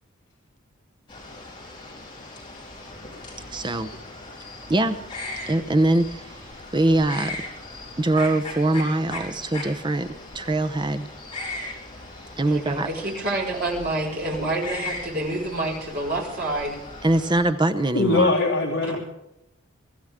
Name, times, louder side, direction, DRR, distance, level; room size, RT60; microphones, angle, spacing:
sound 1, 1.1-17.4, left 2 dB, 25° left, 4.5 m, -38 dB
voice 1, 3.5-3.9 4.7-5.0 5.5-6.4 6.7-7.4 8.0-11.1 12.4-12.9 17.0-18.3, right 1 dB, 20° right, 9 dB, 0.7 m, -23 dB
voice 2, 12.4-16.7, right 2 dB, 50° right, -2 dB, 5.2 m, -28 dB
voice 3, 17.9-19.0, left 3 dB, 60° left, 0 dB, 2.1 m, -21 dB
24.0 x 14.5 x 3.7 m, 0.86 s
head